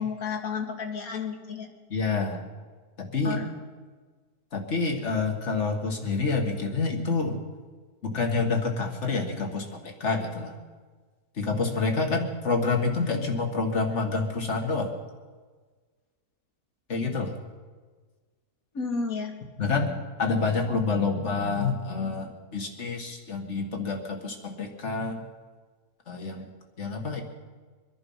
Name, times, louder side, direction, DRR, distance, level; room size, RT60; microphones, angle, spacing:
voice 1, 0.0-1.7 3.2-3.5 18.7-19.3, left 5 dB, 65° left, 3 dB, 2.1 m, -31 dB
voice 2, 1.9-2.4 3.0-3.4 4.5-7.4 8.0-10.5 11.4-14.9 16.9-17.3 19.6-25.2 26.1-26.4 26.8-27.2, left 4 dB, 45° left, 3 dB, 2.0 m, -28 dB
23.5 x 11.0 x 5.6 m, 1.4 s
omnidirectional pair, 1.7 m